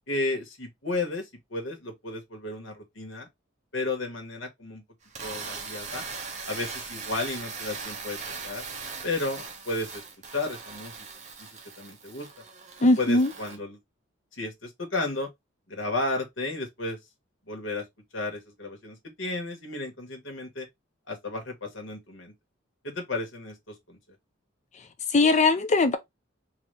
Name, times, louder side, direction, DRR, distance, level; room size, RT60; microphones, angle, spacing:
voice 1, 0.1-3.3 3.7-4.8 5.2-6.0 6.4-8.6 9.0-10.0 10.3-11.1 11.4-11.5 11.8-12.3 12.8-13.8 14.3-15.3 15.7-17.0 17.5-17.8 18.1-20.7 21.1-22.3 22.8-24.0, left 2 dB, 65° left, 1.6 m, -33 dB
sound 1, 5.0-13.6, right 5 dB, 35° right, 1.1 m, -39 dB
voice 2, 12.8-13.3 25.1-26.0, left 2 dB, 35° left, 0.6 m, -20 dB
4.0 x 2.8 x 3.3 m
head